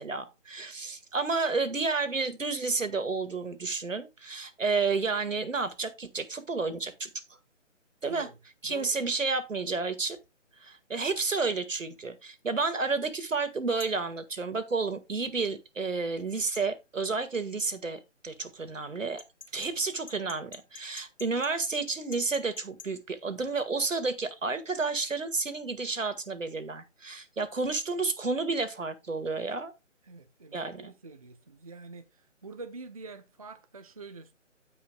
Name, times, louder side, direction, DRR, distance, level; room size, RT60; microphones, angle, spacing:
voice 1, 0.0-7.2 8.0-8.3 8.6-10.2 10.6-19.2 19.5-29.7 30.5-30.9, right 4 dB, 80° right, 1.9 m, -31 dB
voice 2, 8.1-8.4 8.6-9.0 30.0-34.3, right 3 dB, 30° right, 0.6 m, -46 dB
sound 1, 13.8-14.0 16.5-16.7 19.2-22.9, left 5 dB, 80° left, 2.7 m, -47 dB
16.0 x 5.3 x 2.3 m
figure-of-eight pair, 160°, 38 cm